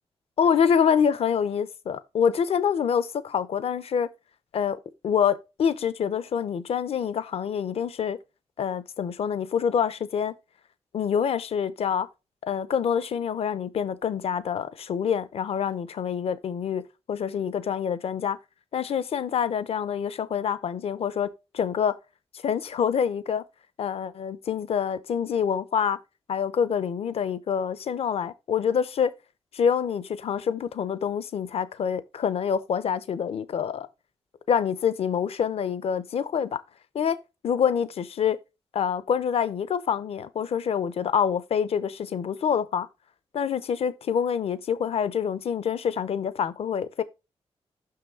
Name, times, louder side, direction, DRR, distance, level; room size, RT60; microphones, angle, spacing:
voice 1, 0.4-4.1 4.5-4.8 5.0-8.2 8.6-10.3 10.9-12.1 12.4-16.8 17.1-18.4 18.7-22.0 22.4-23.4 23.8-26.0 26.3-29.1 29.5-33.9 34.5-36.6 36.9-37.2 37.4-38.4 38.7-42.9 43.3-47.0, left 7 dB, 70° left, 0.6 m, -26 dB
6.2 x 5.7 x 3.6 m
wide cardioid pair, 160°, 11 cm